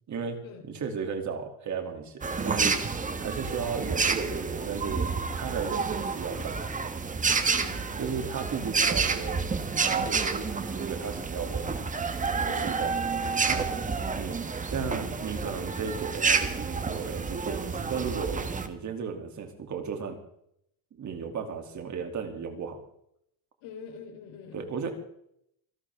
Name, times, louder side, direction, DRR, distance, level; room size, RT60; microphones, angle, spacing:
voice 1, 0.1-2.9 3.2-6.6 8.0-9.4 9.8-11.8 12.4-12.9 13.5-13.6 14.1-14.4 14.7-20.2 20.9-22.8 24.5-24.9, right 6 dB, 35° right, 5 dB, 2.7 m, -35 dB
sound 1, 2.2-18.7, right 5 dB, 15° right, 1.2 m, -29 dB
voice 2, 7.4-8.0 12.5-12.9 13.6-13.9 23.6-24.7, left 6 dB, 75° left, 4 dB, 3.9 m, -45 dB
27.5 x 12.0 x 3.5 m, 0.72 s
cardioid pair, 165°, 48 cm